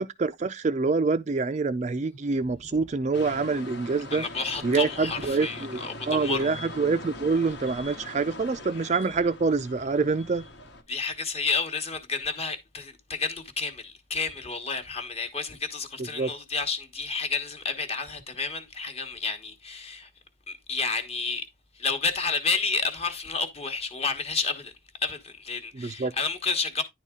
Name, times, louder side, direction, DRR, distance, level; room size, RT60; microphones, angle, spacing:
voice 1, 0.0-4.2 4.6-10.4 16.2-16.3 25.7-26.1, right 4 dB, 35° right, 0.4 m, -26 dB
sound 1, 3.1-10.8, left 2 dB, 65° left, 1.2 m, -41 dB
voice 2, 4.1-6.5 10.9-20.1 20.5-21.4 21.7-24.7 25.0-26.8, left 4 dB, 30° left, 1.1 m, -30 dB
10.0 x 4.1 x 3.6 m
head